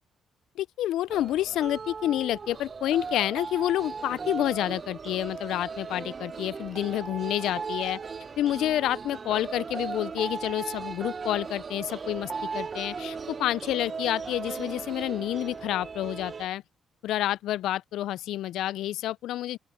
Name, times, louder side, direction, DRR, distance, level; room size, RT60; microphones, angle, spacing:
voice 1, 0.6-8.0 8.4-16.6 17.0-19.6, left 13 dB, 85° left, 0.3 m, -29 dB
sound 1, 1.1-16.5, right 5 dB, 40° right, 0.7 m, -37 dB
open air
cardioid pair, 90°, 0 cm